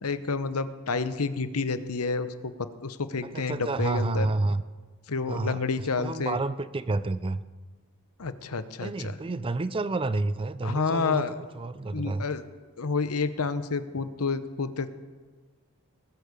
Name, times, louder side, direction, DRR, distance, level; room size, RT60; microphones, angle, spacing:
voice 1, 0.0-4.3 5.1-6.4 8.2-9.2 10.6-11.3 11.9-12.4 12.8-14.9, left 4 dB, 75° left, 12 dB, 0.9 m, -29 dB
voice 2, 3.3-4.6 5.3-5.6 6.0-7.4 8.8-11.2 11.5-12.2, right 2 dB, 25° right, 14 dB, 0.4 m, -29 dB
20.0 x 8.3 x 6.8 m, 1.4 s
head